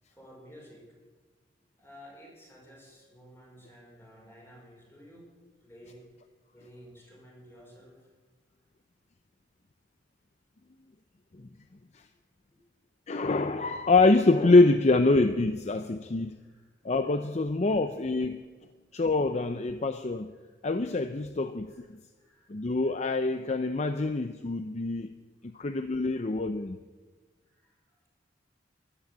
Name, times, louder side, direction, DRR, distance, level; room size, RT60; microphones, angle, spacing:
voice 1, 0.1-0.9 1.8-5.3 5.6-6.1 6.5-8.1 12.5-12.6 16.3-16.7 17.0-17.2 17.7-17.8 19.5-19.6 20.4-20.6 21.7-21.9 22.2-22.5 27.5-28.1, equal, 15° left, 5.5 m, -53 dB
voice 2, 13.1-16.4 16.8-18.4 18.9-20.3 20.6-21.7 22.5-25.1 25.4-26.8, left 3 dB, 40° left, 0.6 m, -25 dB
14.0 x 12.0 x 8.2 m
head